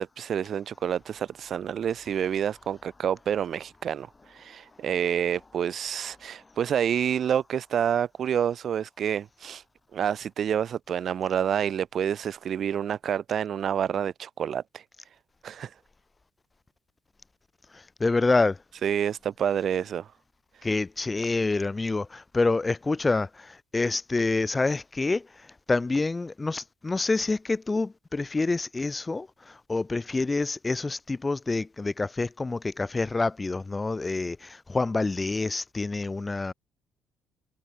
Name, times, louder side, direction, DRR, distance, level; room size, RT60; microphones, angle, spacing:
voice 1, 0.0-9.6 9.9-14.8 15.4-15.7 18.8-20.1, right 8 dB, 50° right, 0.5 m, -28 dB
voice 2, 17.7-18.6 20.6-36.5, left 3 dB, 25° left, 0.9 m, -27 dB
figure-of-eight pair, 45°, 0 cm